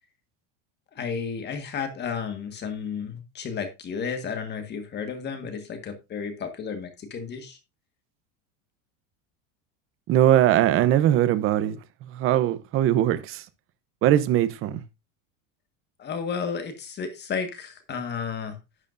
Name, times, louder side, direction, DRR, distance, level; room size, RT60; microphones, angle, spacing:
voice 1, 0.9-7.6 16.0-18.6, left 6 dB, 25° left, 1.6 m, -32 dB
voice 2, 10.1-11.8 12.1-13.4 14.0-14.8, right 12 dB, 35° right, 0.8 m, -21 dB
11.0 x 9.0 x 2.6 m
cardioid pair, 155°, 38 cm